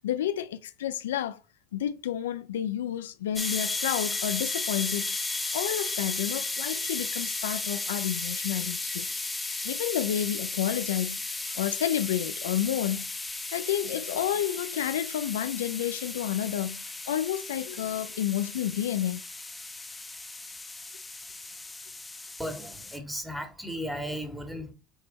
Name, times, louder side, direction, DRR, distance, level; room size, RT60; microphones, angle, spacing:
voice 1, 0.0-1.4 1.7-5.1 5.5-9.1 9.6-13.1 13.5-19.2, left 11 dB, 85° left, 0.4 m, -30 dB
sound 1, 3.4-23.0, left 3 dB, 15° left, 1.0 m, -35 dB
voice 2, 22.4-24.7, equal, 5° right, 1.9 m, -35 dB
7.0 x 3.3 x 4.1 m
hypercardioid pair, 75°, 0 cm